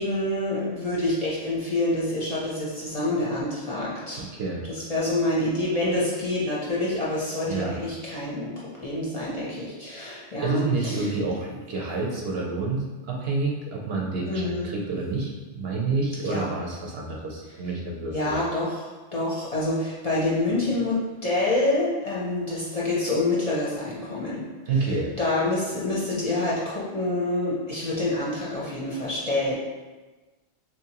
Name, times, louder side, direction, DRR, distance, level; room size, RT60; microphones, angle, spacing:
voice 1, 0.0-4.2 4.7-11.1 14.3-14.7 16.2-16.4 18.1-24.5 24.8-24.9 25.2-29.5, left 2 dB, 40° left, -7 dB, 0.6 m, -27 dB
voice 2, 4.2-4.7 7.5-7.8 10.4-18.4 24.7-25.2, right 3 dB, 65° right, -1 dB, 0.8 m, -28 dB
3.7 x 2.9 x 2.9 m, 1.2 s
omnidirectional pair, 1.2 m